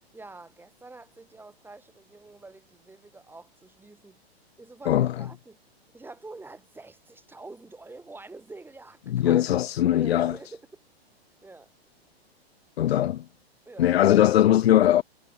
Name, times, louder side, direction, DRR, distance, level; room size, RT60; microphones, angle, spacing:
voice 1, 0.1-4.2 4.6-5.6 5.9-9.4 9.8-10.8 11.4-11.7 13.7-13.9, right 3 dB, 5° right, 6.1 m, -46 dB
voice 2, 9.1-10.3 12.8-13.2 13.8-15.0, left 12 dB, 75° left, 0.8 m, -20 dB
hypercardioid pair, 135°, 32 cm